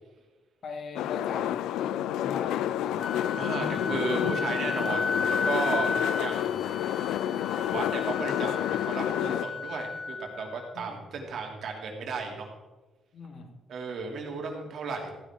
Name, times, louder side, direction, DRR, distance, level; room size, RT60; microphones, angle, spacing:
voice 1, 0.6-3.1 5.5-6.1 6.4-6.8 10.7-11.0 13.1-13.5, left 4 dB, 60° left, 4 dB, 2.0 m, -41 dB
sound 1, 1.0-9.5, left 11 dB, 90° left, 0.3 m, -29 dB
Wind instrument woodwind instrument, 3.0-10.7, left 4 dB, 40° left, 1.2 m, -34 dB
voice 2, 3.4-6.6 7.5-12.5 13.7-15.2, right 4 dB, 65° right, 1 dB, 2.9 m, -34 dB
15.0 x 10.0 x 3.8 m, 1.2 s
cardioid pair, 90°, 0 cm